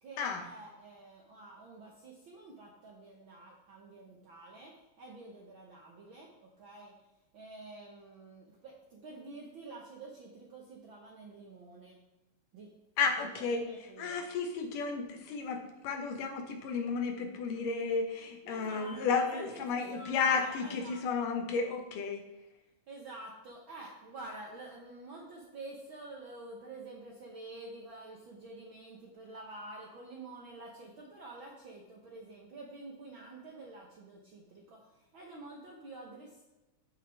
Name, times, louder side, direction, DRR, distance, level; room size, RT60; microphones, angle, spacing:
voice 1, 0.0-6.9 7.3-12.0 12.5-12.7 13.2-14.2 18.4-21.1 22.9-36.4, right 2 dB, 65° right, -1 dB, 1.3 m, -49 dB
voice 2, 13.0-22.2, left 5 dB, 80° left, 4 dB, 2.7 m, -33 dB
14.5 x 5.7 x 3.5 m, 0.99 s
omnidirectional pair, 3.7 m